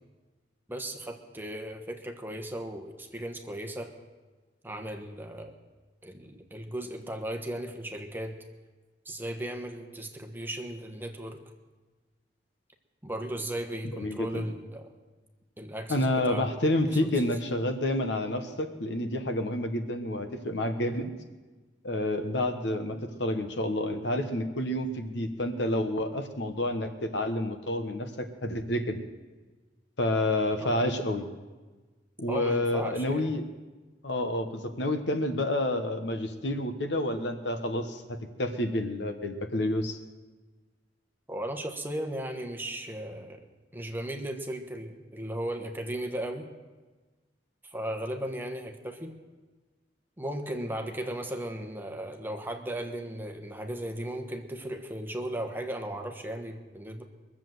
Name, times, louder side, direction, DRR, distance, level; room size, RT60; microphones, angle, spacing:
voice 1, 0.7-3.9 4.6-5.5 6.0-8.4 9.0-11.4 13.0-14.9 15.6-16.6 17.1-17.2 30.6-30.7 32.3-33.3 41.3-43.4 43.7-46.5 47.6-49.2 50.2-57.0, right 1 dB, 10° right, 4 dB, 1.3 m, -36 dB
voice 2, 14.0-14.4 15.9-21.1 21.8-29.0 30.0-31.3 32.2-33.4 34.0-40.0, left 1 dB, 70° left, 7 dB, 1.2 m, -29 dB
22.5 x 7.4 x 7.8 m, 1.3 s
head